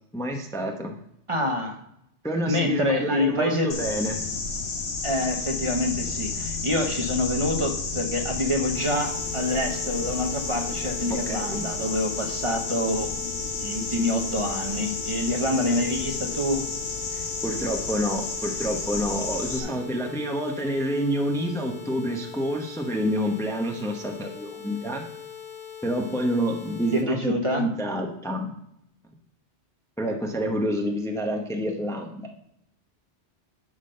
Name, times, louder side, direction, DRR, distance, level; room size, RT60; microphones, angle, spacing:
voice 1, 0.1-1.0 2.2-4.2 11.1-11.7 17.1-25.0 25.8-28.5 30.0-32.3, equal, 5° left, 2 dB, 0.8 m, -28 dB
voice 2, 1.3-1.8 2.5-3.8 5.0-13.1 13.5-16.7 19.6-19.7 26.9-27.7, left 1 dB, 30° right, 2 dB, 1.0 m, -26 dB
sound 1, 3.7-19.6, left 4 dB, 70° left, 1.4 m, -31 dB
sound 2, 8.7-27.0, left 8 dB, 50° left, 1.1 m, -41 dB
10.5 x 3.9 x 6.5 m, 0.77 s
omnidirectional pair, 1.2 m